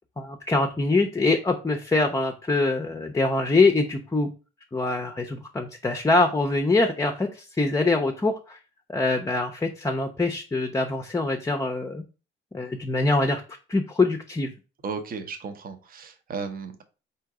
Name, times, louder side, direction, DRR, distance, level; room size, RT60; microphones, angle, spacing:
voice 1, 0.2-4.3 4.7-8.6 8.9-12.0 12.5-13.4 13.7-14.5, left 3 dB, 15° left, 4 dB, 0.6 m, -24 dB
voice 2, 14.8-16.8, right 5 dB, 45° right, 7 dB, 0.8 m, -35 dB
3.7 x 2.8 x 4.8 m, 0.34 s
cardioid pair, 90°, 20 cm